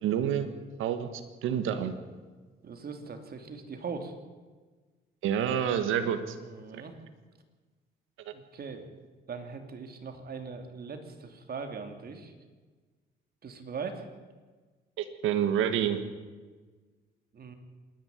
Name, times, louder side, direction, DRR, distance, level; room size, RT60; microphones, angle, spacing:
voice 1, 0.0-0.5 0.8-1.1 1.4-1.9 5.2-6.3 6.7-6.8 8.2-8.3 15.0-16.0, right 9 dB, 90° right, 9 dB, 1.6 m, -28 dB
voice 2, 2.6-4.1 6.4-7.0 8.3-8.9 9.3-12.3 13.4-14.1 17.3-17.5, right 5 dB, 50° right, 6 dB, 3.0 m, -40 dB
26.0 x 11.0 x 9.5 m, 1.4 s
cardioid pair, 90°, 20 cm